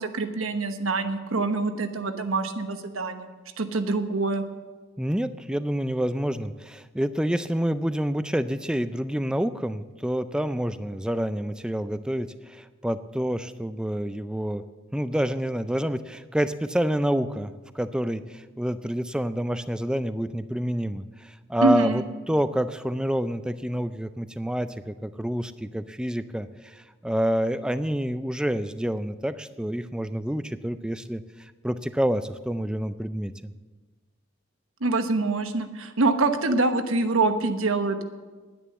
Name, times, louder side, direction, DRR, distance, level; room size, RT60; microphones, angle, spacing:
voice 1, 0.0-3.3 3.6-4.4 21.6-22.0 34.8-38.0, right 3 dB, 85° right, 8 dB, 1.1 m, -25 dB
voice 2, 5.0-14.6 14.9-33.5, equal, 5° right, 12 dB, 0.4 m, -28 dB
10.5 x 9.9 x 7.5 m, 1.3 s
head